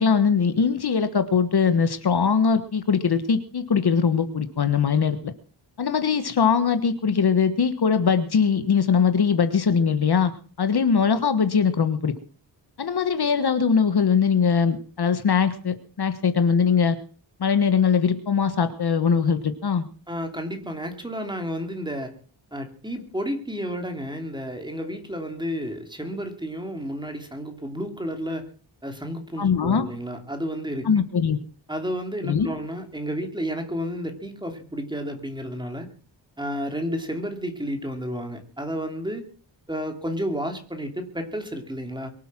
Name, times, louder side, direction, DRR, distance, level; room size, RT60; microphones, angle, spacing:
voice 1, 0.0-5.2 5.8-10.3 10.6-12.1 12.8-17.0 17.4-19.8 29.4-29.9 30.8-31.4 32.2-32.5, left 6 dB, 55° left, 10 dB, 1.5 m, -21 dB
voice 2, 20.1-22.1 22.5-28.5 28.8-30.9 31.7-35.9 36.4-39.2 39.7-42.1, equal, 10° right, 5 dB, 2.8 m, -31 dB
23.5 x 8.4 x 6.1 m, 0.42 s
wide cardioid pair, 135°, 46 cm